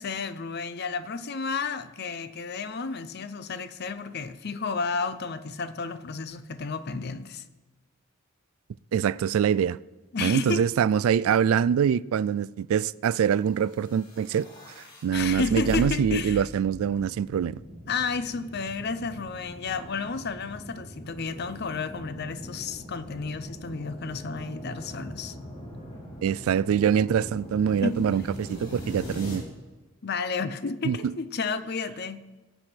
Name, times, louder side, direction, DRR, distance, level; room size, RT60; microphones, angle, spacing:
voice 1, 0.0-7.4 10.1-10.7 15.1-16.4 17.9-25.4 27.8-28.2 30.0-32.3, left 4 dB, 50° left, 0.6 m, -32 dB
voice 2, 8.9-9.8 10.2-14.5 15.0-17.6 26.2-29.4 30.8-31.0, right 8 dB, 75° right, 0.3 m, -24 dB
sound 1, 13.6-29.4, equal, 35° left, 4.2 m, -41 dB
18.0 x 8.0 x 4.4 m
head